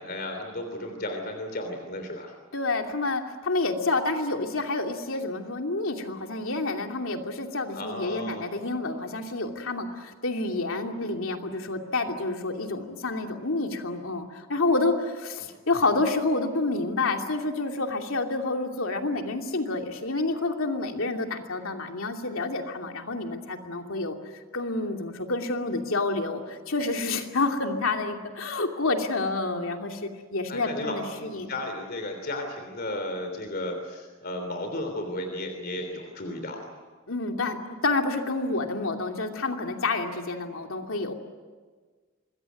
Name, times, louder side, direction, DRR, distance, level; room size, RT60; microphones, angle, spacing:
voice 1, 0.0-2.4 7.7-8.4 15.4-15.5 30.5-36.7, left 1 dB, 50° left, 5 dB, 3.3 m, -34 dB
voice 2, 2.5-24.2 24.5-31.5 37.1-41.1, left 3 dB, 80° left, 3 dB, 2.8 m, -29 dB
26.0 x 21.5 x 9.3 m, 1.5 s
head